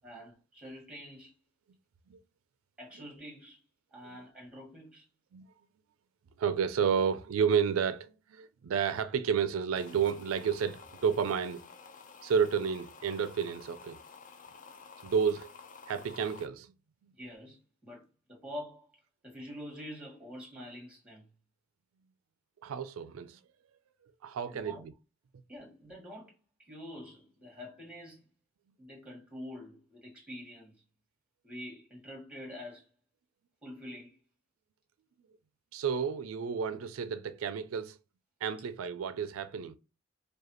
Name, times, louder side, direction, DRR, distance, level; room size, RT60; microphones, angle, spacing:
voice 1, 0.0-1.4 2.8-3.6 3.9-5.1 17.2-18.0 18.3-18.8 19.2-21.2 24.5-24.8 25.5-26.3 26.6-28.2 28.8-30.7 31.4-32.8 33.6-34.2, equal, 5° right, 1.7 m, -46 dB
voice 2, 6.4-11.6 12.2-14.0 15.0-15.5 15.9-16.7 22.6-23.4 24.2-24.9 35.7-38.0 38.4-39.8, right 7 dB, 80° right, 0.4 m, -31 dB
sound 1, 9.7-16.5, left 5 dB, 40° left, 0.5 m, -52 dB
4.8 x 2.3 x 2.9 m
head